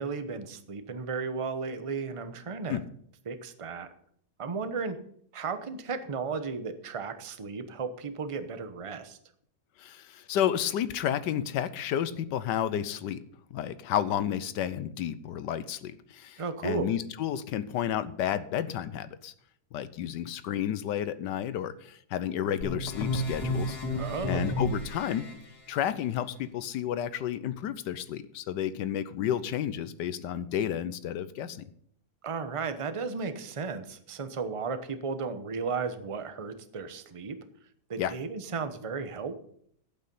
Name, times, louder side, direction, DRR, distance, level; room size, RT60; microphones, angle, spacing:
voice 1, 0.0-2.8 3.3-3.9 4.4-5.0 5.3-9.2 16.4-16.9 23.9-24.6 32.2-37.4 37.9-39.4, right 5 dB, 25° right, 9 dB, 0.7 m, -34 dB
voice 2, 9.8-13.2 13.5-19.3 19.7-23.8 24.2-25.2 25.7-31.6 38.0-38.1, left 10 dB, 90° left, 14 dB, 1.4 m, -31 dB
sound 1, 22.6-25.3, left 1 dB, 65° left, 2.6 m, -32 dB
11.5 x 8.8 x 5.5 m, 0.65 s
omnidirectional pair, 1.8 m